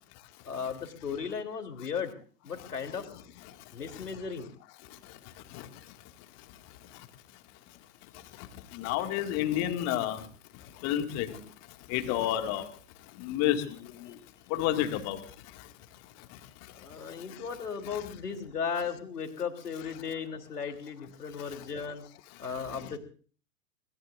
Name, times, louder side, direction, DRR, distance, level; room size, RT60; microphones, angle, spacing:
voice 1, 0.4-2.1 2.4-3.0 3.7-4.5 14.1-14.2 16.8-22.0 22.4-23.0, left 6 dB, 70° left, 5 dB, 3.4 m, -36 dB
voice 2, 8.8-10.2 10.8-11.4 11.9-12.6 13.2-13.6 14.5-15.2, left 12 dB, 30° left, 7 dB, 2.2 m, -29 dB
25.0 x 21.0 x 2.6 m, 0.41 s
figure-of-eight pair, 105°, 48 cm